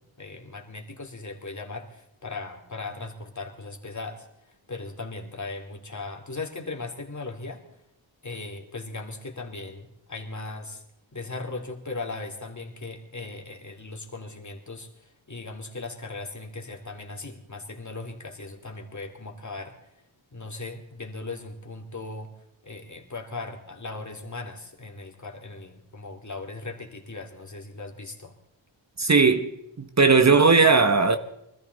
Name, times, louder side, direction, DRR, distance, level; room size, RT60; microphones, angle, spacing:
voice 1, 0.2-7.6 8.2-10.8 11.1-19.8 20.3-22.3 22.6-28.4, left 3 dB, 40° left, 2.8 m, -38 dB
voice 2, 29.0-29.5 29.8-31.2, right 4 dB, 35° right, 1.2 m, -18 dB
24.0 x 14.0 x 4.1 m
wide cardioid pair, 75°, 46 cm